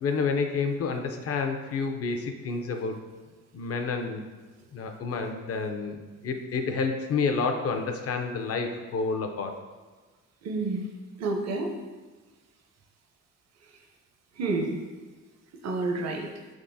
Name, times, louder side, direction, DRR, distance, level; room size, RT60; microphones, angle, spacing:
voice 1, 0.0-2.9 3.5-4.2 4.7-9.5, left 4 dB, 50° left, 5 dB, 0.5 m, -29 dB
voice 2, 10.4-10.9 11.2-11.7 14.4-14.8 15.6-16.3, right 3 dB, 60° right, 3 dB, 0.6 m, -29 dB
4.1 x 3.6 x 2.6 m, 1.3 s
cardioid pair, 90°, 30 cm